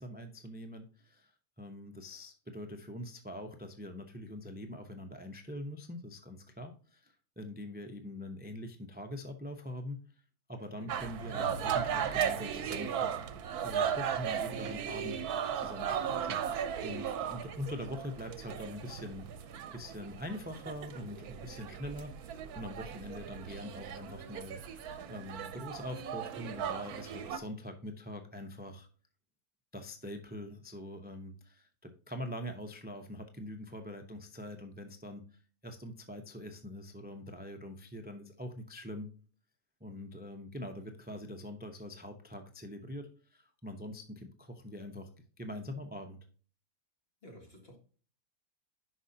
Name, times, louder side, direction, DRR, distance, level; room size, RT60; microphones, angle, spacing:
voice 1, 0.0-10.2 10.5-13.2 13.6-15.2 15.5-24.6 25.1-28.9 29.7-39.1 39.8-45.1 45.4-46.2, left 1 dB, 15° right, 6 dB, 0.4 m, -44 dB
sound 1, 10.9-27.4, right 8 dB, 85° right, 1.3 m, -36 dB
sound 2, 11.3-15.0, equal, 65° left, 1.8 m, -50 dB
voice 2, 47.2-47.8, equal, 40° left, 1 dB, 2.2 m, -52 dB
10.0 x 5.4 x 2.8 m, 0.40 s
omnidirectional pair, 1.6 m